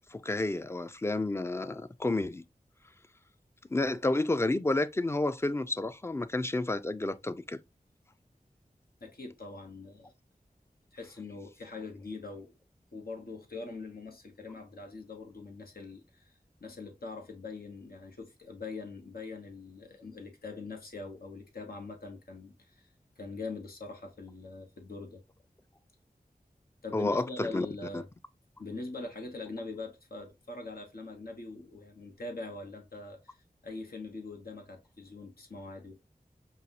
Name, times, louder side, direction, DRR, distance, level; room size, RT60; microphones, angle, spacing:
voice 1, 0.1-2.4 3.7-7.6 26.9-27.7, left 2 dB, 15° left, 0.4 m, -30 dB
voice 2, 9.0-10.1 10.9-12.5 12.9-25.2 26.8-28.1 28.6-36.0, left 3 dB, 85° left, 1.2 m, -43 dB
5.5 x 2.4 x 2.7 m
wide cardioid pair, 65°, 15 cm